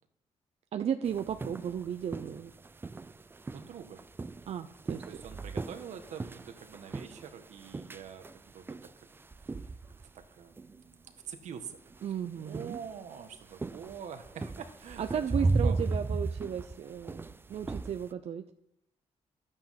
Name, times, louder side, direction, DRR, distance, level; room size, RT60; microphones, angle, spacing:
voice 1, 0.7-2.5 4.5-5.0 12.0-12.8 15.0-18.4, right 8 dB, 60° right, 8 dB, 0.6 m, -35 dB
sound 1, 1.1-10.2 10.6-10.8 11.9-12.0 12.5-18.0, right 3 dB, 20° right, 0.4 m, -35 dB
voice 2, 3.5-4.0 5.1-8.8 9.4-9.7 10.1-11.8 12.3-15.0 15.4-15.9, right 7 dB, 80° right, 7 dB, 1.5 m, -45 dB
12.5 x 8.9 x 5.9 m, 0.78 s
cardioid pair, 125°, 12 cm